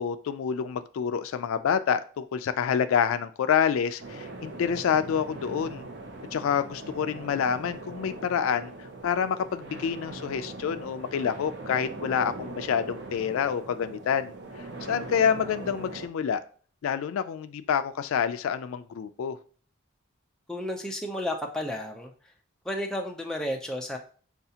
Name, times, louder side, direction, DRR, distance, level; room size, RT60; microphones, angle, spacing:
voice 1, 0.0-5.8 6.3-14.3 14.9-16.4 16.8-19.4, left 7 dB, 75° left, 0.3 m, -27 dB
sound 1, 4.0-16.1, right 2 dB, 55° right, 0.7 m, -41 dB
voice 2, 20.5-22.1 22.6-24.0, left 1 dB, 5° left, 0.5 m, -32 dB
6.6 x 2.4 x 2.8 m
head